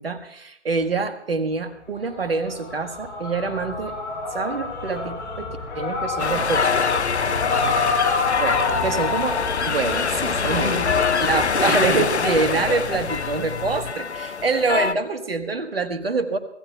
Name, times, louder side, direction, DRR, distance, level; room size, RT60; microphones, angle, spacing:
voice 1, 0.0-3.9 4.3-5.5 5.7-6.9 8.4-10.8 11.2-16.4, right 4 dB, 55° right, 9 dB, 1.5 m, -26 dB
sound 1, 2.1-11.6, left 4 dB, 20° left, 4.1 m, -28 dB
sound 2, 6.2-14.9, left 6 dB, 70° left, 0.7 m, -24 dB
voice 2, 7.2-7.8 8.5-8.9 10.4-13.0, left 1 dB, 35° left, 3 dB, 4.9 m, -32 dB
25.5 x 15.5 x 2.3 m, 0.80 s
figure-of-eight pair, 145°, 35 cm